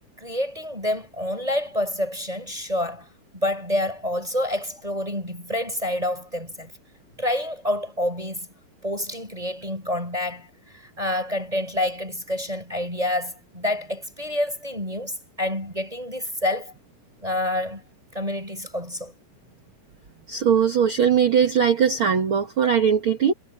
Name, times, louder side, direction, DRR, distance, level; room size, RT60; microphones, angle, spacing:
voice 1, 0.2-3.1 3.3-6.7 7.2-8.5 8.8-16.7 17.2-17.8 18.1-19.1, left 1 dB, 10° right, 5.4 m, -28 dB
voice 2, 20.3-23.3, right 7 dB, 50° right, 1.5 m, -20 dB
omnidirectional pair, 4.8 m